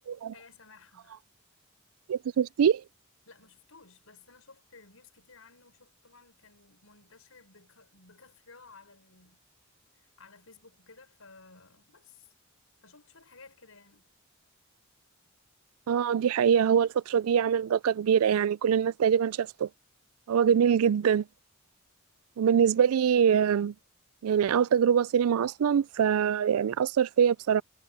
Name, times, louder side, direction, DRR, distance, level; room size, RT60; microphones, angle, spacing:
voice 1, 0.3-1.2 2.2-2.5 3.3-9.4 9.9-12.3 12.8-14.1 20.3-20.5, left 4 dB, 75° left, 5.6 m, -56 dB
voice 2, 2.1-2.8 15.9-19.7 20.3-21.2 22.4-23.7 24.2-27.6, right 8 dB, 85° right, 0.4 m, -24 dB
head